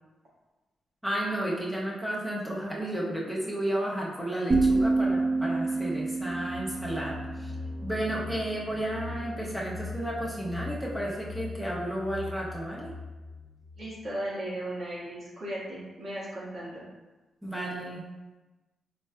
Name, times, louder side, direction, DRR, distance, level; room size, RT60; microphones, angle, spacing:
voice 1, 1.0-7.5 7.8-12.9 17.4-18.1, right 1 dB, ahead, -5 dB, 0.8 m, -32 dB
sound 1, 4.5-8.4, right 3 dB, 30° right, 0.4 m, -28 dB
sound 2, 6.2-13.9, left 3 dB, 80° right, 0.9 m, -41 dB
voice 2, 13.8-16.8, right 1 dB, 60° right, -7 dB, 1.4 m, -36 dB
4.4 x 3.2 x 2.2 m, 1.2 s
cardioid pair, 70°, 0 cm